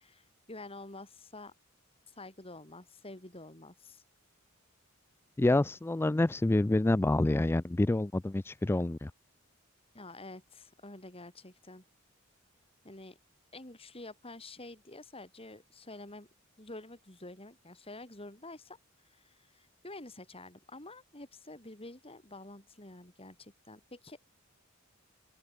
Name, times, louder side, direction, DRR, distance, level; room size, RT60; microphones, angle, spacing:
voice 1, 0.0-1.5 2.2-4.0 9.9-11.8 12.8-13.2 13.5-16.3 16.6-18.8 19.0-24.2, left 2 dB, 30° left, 5.0 m, -48 dB
voice 2, 5.4-9.1, left 2 dB, 10° left, 0.3 m, -27 dB
open air
head